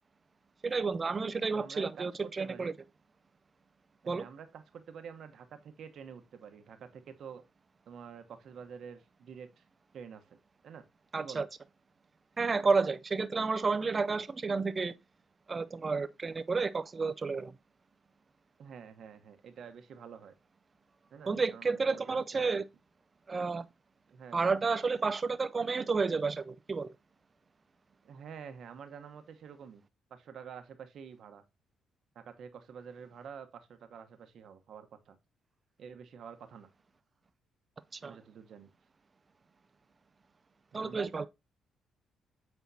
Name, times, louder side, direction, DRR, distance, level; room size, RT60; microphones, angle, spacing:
voice 1, 0.6-2.7 4.1-4.2 11.1-11.5 12.4-14.9 15.5-17.5 21.3-22.6 23.3-23.7 24.3-26.9 37.9-38.2 40.7-41.2, right 4 dB, 30° right, 0.5 m, -31 dB
voice 2, 1.5-2.7 4.0-7.4 7.9-9.6 9.9-10.4 10.6-10.8 11.2-11.5 18.6-20.3 21.1-22.6 24.1-24.6 28.0-29.8 30.1-31.4 32.1-35.2 35.8-36.7 38.0-38.7 40.7-41.3, right 7 dB, 65° right, 1.0 m, -48 dB
8.1 x 4.5 x 2.7 m
cardioid pair, 90°, 0 cm